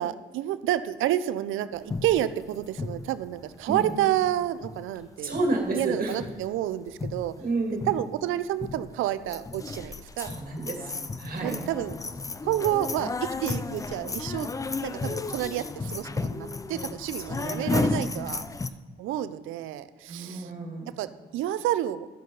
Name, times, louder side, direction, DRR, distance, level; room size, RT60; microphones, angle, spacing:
voice 1, 0.0-5.3 5.7-7.3 7.9-10.3 11.4-12.0 12.4-14.5 14.8-18.5 19.0-20.5 21.0-22.1, right 13 dB, 85° right, 14 dB, 0.5 m, -29 dB
sound 1, 1.9-4.3 4.6-5.0 5.3-5.9 6.2-6.5 6.9-7.5 7.8-8.2 8.6-9.0 9.3-18.7, left 3 dB, 15° left, 0.4 m, -33 dB
voice 2, 5.2-6.2 7.4-7.9 9.8-9.9 10.2-11.6 17.2-18.2 20.1-20.9, right 2 dB, 45° right, 1 dB, 2.1 m, -31 dB
11.5 x 7.6 x 3.9 m, 1.5 s
cardioid pair, 90°, 20 cm